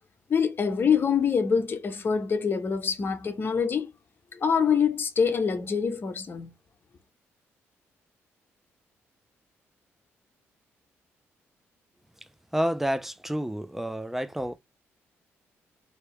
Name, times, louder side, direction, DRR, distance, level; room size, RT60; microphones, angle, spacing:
voice 1, 0.3-3.9 4.3-6.5, left 6 dB, 45° left, 1.0 m, -25 dB
voice 2, 12.5-14.6, equal, 5° right, 0.5 m, -29 dB
3.4 x 2.8 x 3.2 m
cardioid pair, 80°, 5 cm